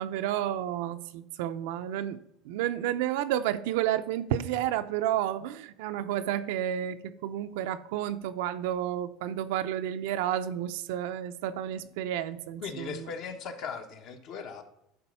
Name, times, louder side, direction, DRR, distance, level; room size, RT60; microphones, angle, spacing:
voice 1, 0.0-2.2 2.5-13.1, right 11 dB, 80° right, 9 dB, 0.6 m, -31 dB
voice 2, 12.6-14.6, left 5 dB, 55° left, 5 dB, 1.3 m, -38 dB
11.0 x 4.1 x 5.5 m, 0.81 s
cardioid pair, 135°, 0 cm